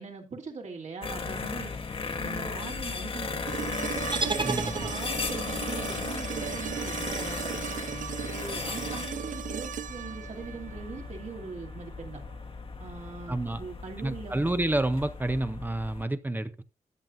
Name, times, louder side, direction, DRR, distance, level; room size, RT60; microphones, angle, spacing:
voice 1, 0.0-1.7 2.2-3.5 4.2-7.8 8.2-12.2 12.8-14.5, right 4 dB, 65° right, 2.8 m, -41 dB
sound 1, 1.0-16.1, left 4 dB, 45° left, 1.1 m, -36 dB
sound 2, 3.5-11.5 13.7-13.8, right 9 dB, 85° right, 0.5 m, -37 dB
sound 3, 4.1-5.4, right 4 dB, 40° right, 0.9 m, -32 dB
voice 2, 4.4-4.9 13.3-13.6 14.0-16.6, right 1 dB, 15° right, 0.6 m, -29 dB
13.5 x 9.0 x 2.5 m
wide cardioid pair, 160°, 13 cm